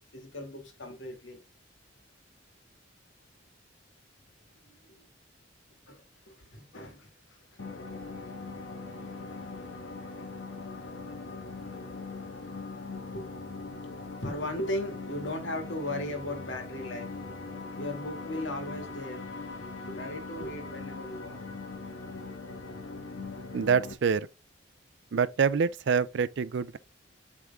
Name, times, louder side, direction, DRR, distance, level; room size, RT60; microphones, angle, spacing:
voice 1, 0.0-1.4 4.7-5.1 5.9-7.6 13.1-13.8 14.2-17.1 17.8-19.2 19.5-21.4, left 1 dB, 70° left, 2.1 m, -38 dB
sound 1, 7.6-23.9, left 3 dB, 90° left, 1.4 m, -41 dB
voice 2, 23.5-24.3 25.1-26.8, right 6 dB, 60° right, 0.4 m, -26 dB
7.9 x 3.6 x 3.5 m
head